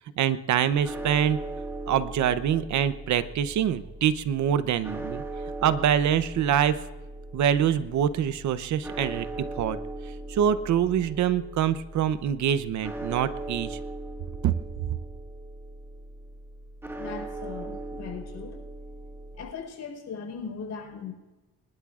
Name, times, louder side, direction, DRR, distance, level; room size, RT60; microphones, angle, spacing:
voice 1, 0.2-1.4 1.9-5.2 5.6-6.8 7.3-9.3 9.5-9.8 10.3-13.8 14.4-14.5 14.8-14.9, right 9 dB, 70° right, 13 dB, 0.8 m, -25 dB
sound 1, 0.8-19.5, right 2 dB, 10° right, 1.7 m, -39 dB
voice 2, 17.0-18.6 19.3-21.1, left 6 dB, 70° left, 3 dB, 4.5 m, -38 dB
25.5 x 12.0 x 2.5 m, 1.1 s
cardioid pair, 90°, 30 cm